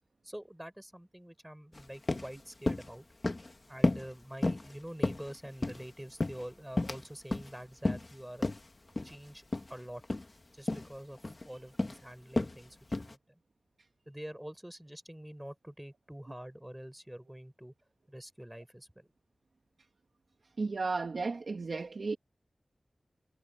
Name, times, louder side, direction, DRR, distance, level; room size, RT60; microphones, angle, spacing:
voice 1, 0.2-3.1 3.6-8.5 9.0-9.4 9.7-10.0 10.5-11.2 11.4-13.4 14.1-17.7 18.1-19.1, equal, 10° right, 4.8 m, -46 dB
sound 1, 1.7-1.8 2.1-2.3 2.7-2.9 3.2-3.5 3.8-4.1 4.4-4.7 5.0-5.8 6.2-7.0 7.3-7.5 7.8-8.1 8.4-8.6 9.0-9.1 9.5-9.7 10.0-10.2 10.7-10.9 11.2-11.5 11.8-12.0 12.4-12.6 12.9-13.1, left 2 dB, 40° left, 1.9 m, -31 dB
voice 2, 20.6-22.2, right 3 dB, 70° right, 1.6 m, -34 dB
wide cardioid pair, 80°, 0 cm